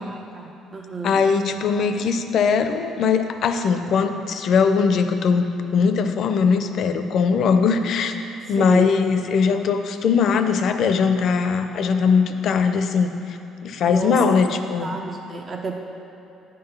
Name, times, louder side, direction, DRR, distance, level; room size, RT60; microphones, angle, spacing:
voice 1, 0.0-1.3 8.6-9.0 13.9-15.8, right 4 dB, 35° right, 2 dB, 0.5 m, -31 dB
voice 2, 1.0-8.1 8.5-13.1 13.6-15.0, left 5 dB, 60° left, 8 dB, 0.5 m, -20 dB
9.4 x 3.9 x 5.5 m, 2.9 s
cardioid pair, 95°, 0 cm